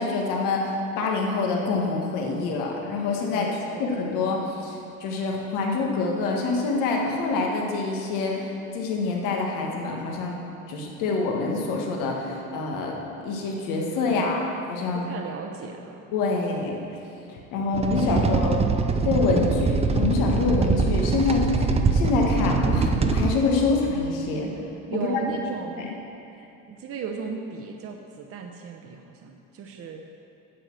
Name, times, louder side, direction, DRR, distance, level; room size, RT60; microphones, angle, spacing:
voice 1, 0.0-3.5 3.8-10.4 10.7-13.0 13.2-15.1 16.1-16.8 17.5-18.7 19.0-21.7 21.9-24.5 24.9-25.0 25.8-25.9, left 3 dB, 80° left, 0 dB, 1.6 m, -26 dB
voice 2, 3.3-3.9 14.0-14.6 14.9-16.0 18.0-18.3 24.9-25.8 26.7-30.0, right 5 dB, 45° right, 2 dB, 0.9 m, -36 dB
sound 1, 17.7-23.3, right 4 dB, 20° right, 0.6 m, -23 dB
9.3 x 6.5 x 7.6 m, 2.9 s
cardioid pair, 110°, 32 cm